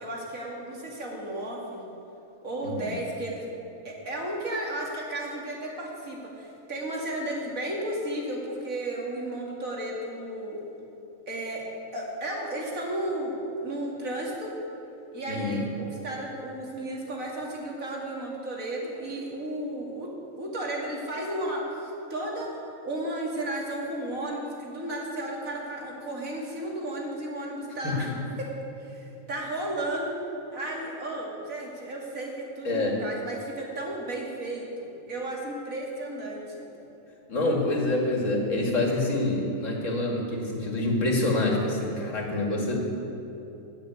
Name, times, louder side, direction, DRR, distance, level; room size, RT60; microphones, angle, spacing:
voice 1, 0.0-1.8 2.4-3.4 3.8-10.6 11.3-11.6 11.9-14.5 15.1-28.1 28.4-28.5 28.8-30.2 30.5-36.6, right 1 dB, 80° right, -2 dB, 2.9 m, -34 dB
voice 2, 15.3-15.6 27.8-28.0 32.6-33.0 37.3-42.9, left 2 dB, 70° left, 0 dB, 2.5 m, -26 dB
16.0 x 6.8 x 9.5 m, 2.9 s
omnidirectional pair, 1.4 m